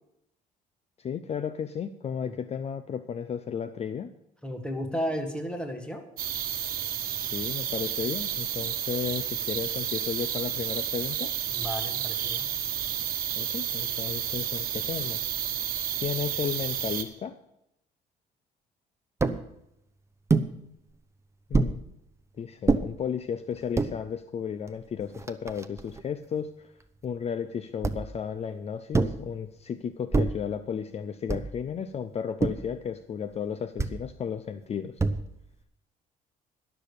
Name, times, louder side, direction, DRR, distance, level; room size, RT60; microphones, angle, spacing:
voice 1, 1.0-4.1 7.3-11.3 13.4-15.3 16.0-17.4 21.5-21.8 22.4-26.7 27.0-35.0, left 7 dB, 40° left, 11 dB, 0.6 m, -34 dB
voice 2, 4.4-6.0 11.5-12.5, equal, 5° left, 4 dB, 1.8 m, -33 dB
sound 1, 6.2-17.0, right 10 dB, 60° right, 1.3 m, -31 dB
sound 2, 19.2-19.4 20.3-20.5 21.5-21.8 22.7-22.8 23.6-23.9 24.7-24.8 25.0-26.0 27.8-28.2 28.9-29.3 30.1-30.5 31.3-31.6 32.4-32.7 33.8-34.0 35.0-35.4, right 3 dB, 15° right, 0.8 m, -26 dB
11.5 x 6.9 x 8.3 m, 0.81 s
cardioid pair, 110°, 17 cm